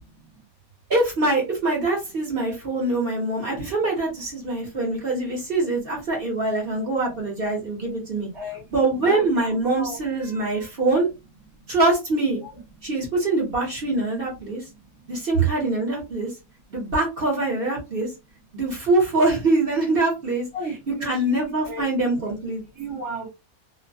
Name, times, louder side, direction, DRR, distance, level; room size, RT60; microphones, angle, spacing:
voice 1, 0.9-8.3 8.7-11.1 11.7-12.4 12.8-14.6 15.1-16.3 16.7-18.1 18.5-20.5 21.0-22.6, right 2 dB, 45° right, 1.0 m, -24 dB
voice 2, 9.0-10.0 12.4-12.5 15.3-15.5 20.5-21.4 21.7-22.4 22.8-23.3, right 4 dB, ahead, 0.7 m, -31 dB
2.6 x 2.1 x 2.6 m
omnidirectional pair, 1.5 m